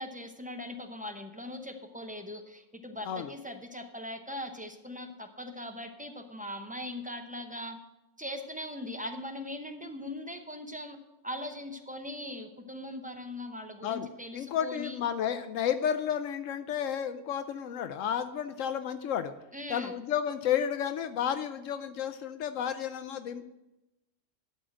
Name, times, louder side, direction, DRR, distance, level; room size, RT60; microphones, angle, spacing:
voice 1, 0.0-7.8 8.2-11.0 11.2-15.0 19.5-20.0, left 1 dB, 10° right, 4 dB, 0.6 m, -40 dB
voice 2, 14.3-19.3 19.7-23.4, left 9 dB, 85° left, 10 dB, 1.0 m, -32 dB
11.5 x 4.4 x 7.6 m, 0.94 s
omnidirectional pair, 1.3 m